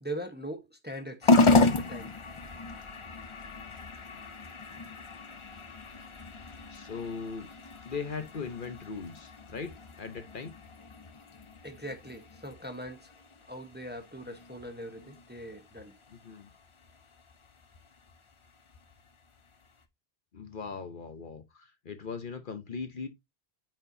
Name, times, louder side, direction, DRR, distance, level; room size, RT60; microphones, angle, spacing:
voice 1, 0.0-1.3 1.7-2.1 11.6-13.1 13.5-15.9, right 1 dB, 10° right, 0.9 m, -41 dB
sound 1, 1.2-19.8, left 3 dB, 35° left, 0.7 m, -32 dB
voice 2, 6.7-7.5 7.9-10.5 16.1-16.5 20.3-23.1, left 5 dB, 55° left, 1.0 m, -39 dB
8.8 x 4.4 x 2.6 m
omnidirectional pair, 1.1 m